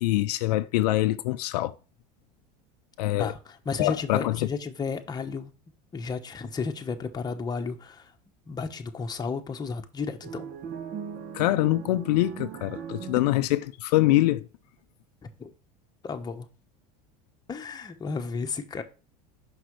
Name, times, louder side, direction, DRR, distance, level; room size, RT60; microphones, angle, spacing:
voice 1, 0.0-1.7 3.0-3.3 3.8-4.5 11.3-14.5, left 16 dB, 85° left, 0.5 m, -24 dB
voice 2, 3.2-5.5 5.9-8.1 8.5-10.5 15.2-15.5 16.0-16.5 17.5-18.8, left 5 dB, 20° left, 1.0 m, -33 dB
sound 1, 10.2-13.7, right 7 dB, 45° right, 1.0 m, -39 dB
6.0 x 5.7 x 3.2 m
supercardioid pair, 110°, 20 cm